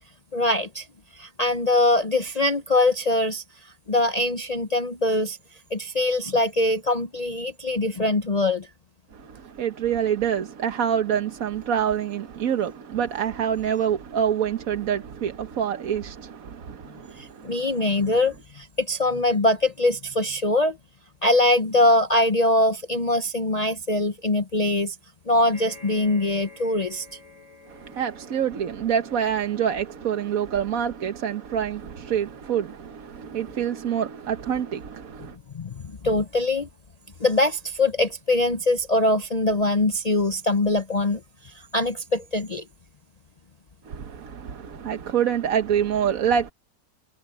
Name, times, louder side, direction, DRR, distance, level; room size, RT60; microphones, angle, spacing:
voice 1, 0.3-0.9 1.1-3.4 3.9-5.4 5.7-8.7 17.2-20.8 21.2-25.0 25.3-27.0 35.5-36.7 37.2-41.2 41.4-42.6, left 2 dB, 70° left, 0.3 m, -23 dB
voice 2, 9.1-17.7 27.7-35.4 43.9-46.5, right 8 dB, 55° right, 1.3 m, -26 dB
sound 1, 25.5-40.1 40.8-40.9 41.2-41.3, left 2 dB, 40° left, 5.2 m, -53 dB
omnidirectional pair, 2.0 m